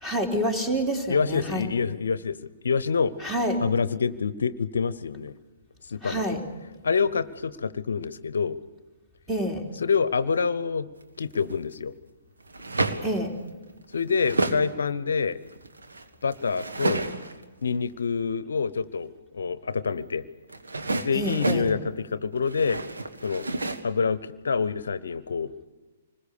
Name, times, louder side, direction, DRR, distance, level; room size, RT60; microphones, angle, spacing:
voice 1, 0.0-1.7 3.2-3.6 6.0-6.5 9.3-9.7 13.0-13.4 21.1-21.7, equal, 10° right, 4 dB, 3.0 m, -27 dB
voice 2, 1.1-2.4 2.6-3.1 3.6-5.3 5.9-6.3 6.8-8.6 9.8-10.9 11.2-11.9 13.9-15.4 16.2-17.1 17.6-20.3 21.0-22.8 23.2-23.4 23.8-25.5, left 5 dB, 65° left, 17 dB, 0.8 m, -26 dB
sound 1, 11.0-11.6 12.4-13.2 13.7-14.7 15.1-17.4 20.5-21.7 22.3-23.8, right 2 dB, 70° right, 1.8 m, -30 dB
26.5 x 21.0 x 6.9 m, 1.2 s
figure-of-eight pair, 120°, 0 cm